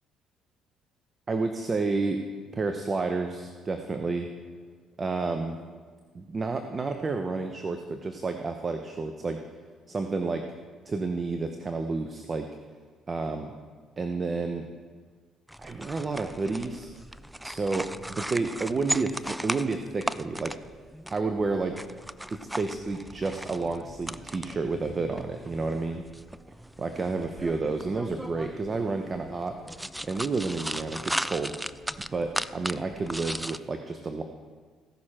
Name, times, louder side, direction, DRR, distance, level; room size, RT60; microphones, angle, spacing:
voice 1, 1.3-2.2 2.5-4.3 5.0-5.6 6.1-9.4 9.9-10.5 10.9-12.5 13.1-13.5 14.0-14.7 15.6-16.9 17.4-17.9 18.2-20.6 21.1-21.8 22.3-26.0 26.8-29.6 30.0-31.5 32.1-34.2, right 3 dB, 35° right, 6 dB, 0.8 m, -30 dB
sound 1, 15.5-33.6, right 1 dB, 5° right, 0.3 m, -37 dB
16.0 x 6.4 x 4.4 m, 1.5 s
supercardioid pair, 70°, 0 cm